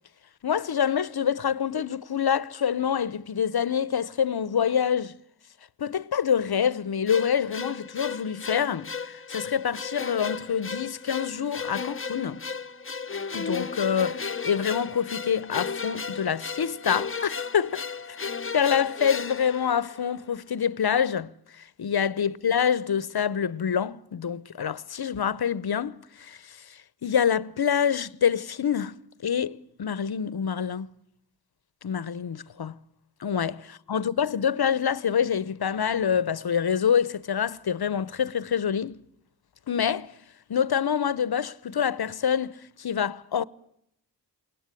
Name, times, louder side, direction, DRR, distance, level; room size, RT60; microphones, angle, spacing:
voice 1, 0.4-5.2 5.8-12.4 13.3-18.3 18.5-28.9 29.2-30.9 31.8-32.8 33.2-39.0 39.7-40.2 40.5-43.4, left 8 dB, 60° left, 0.8 m, -26 dB
sound 1, 7.1-20.3, left 5 dB, 30° left, 0.8 m, -35 dB
21.5 x 18.5 x 9.7 m
cardioid pair, 45°, 42 cm